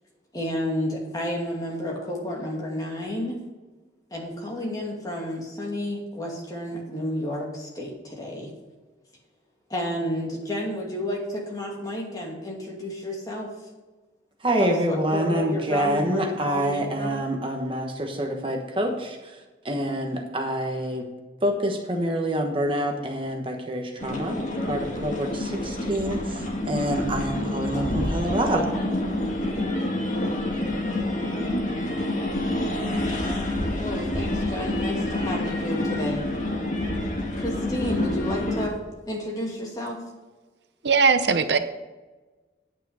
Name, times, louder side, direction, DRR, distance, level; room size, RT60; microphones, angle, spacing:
voice 1, 0.3-3.4 4.1-8.5 9.7-13.5 14.6-17.3 33.8-36.2 37.4-40.0, left 1 dB, 20° left, -2 dB, 2.4 m, -31 dB
voice 2, 14.4-19.2 19.6-21.1 21.4-24.4 24.7-26.2 26.7-28.7, right 1 dB, 30° right, 2 dB, 1.2 m, -26 dB
sound 1, 24.0-38.7, left 1 dB, 45° left, 2.0 m, -28 dB
voice 3, 40.8-41.6, right 5 dB, 70° right, 10 dB, 0.7 m, -19 dB
9.6 x 8.9 x 4.9 m, 1.2 s
head